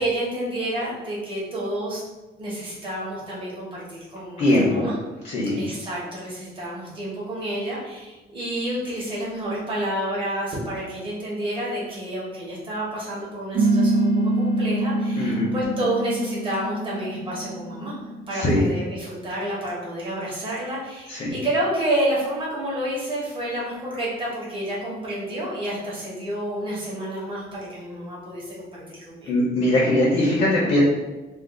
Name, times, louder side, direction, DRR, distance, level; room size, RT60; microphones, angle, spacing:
voice 1, 0.0-2.0 2.4-5.0 5.6-18.0 18.3-29.3, right 1 dB, 30° right, -6 dB, 1.0 m, -29 dB
voice 2, 4.4-4.8 5.2-5.6 15.2-15.5 18.3-18.7 21.1-21.3 29.3-30.8, left 1 dB, 45° left, -5 dB, 0.7 m, -21 dB
sound 1, 13.5-18.5, right 2 dB, 55° right, 0.6 m, -24 dB
2.5 x 2.3 x 3.6 m, 1.1 s
cardioid pair, 180°, 19 cm